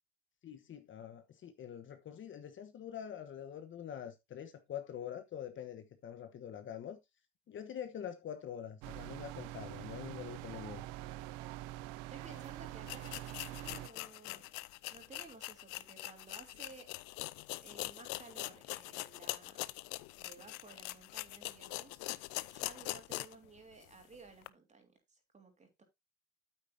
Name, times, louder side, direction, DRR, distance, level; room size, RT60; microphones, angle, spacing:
voice 1, 0.4-7.0 7.5-10.8, left 9 dB, 40° left, 1.2 m, -45 dB
sound 1, 8.8-13.9, right 16 dB, 75° right, 0.6 m, -45 dB
voice 2, 12.1-14.5 14.9-16.9 17.6-19.6 20.2-22.1 22.5-25.8, right 4 dB, 25° right, 3.2 m, -56 dB
sound 2, 12.3-12.4 12.8-23.5 23.8-23.9 24.4-24.5, left 21 dB, 75° left, 0.7 m, -43 dB
9.2 x 8.4 x 2.7 m
supercardioid pair, 95°, 30 cm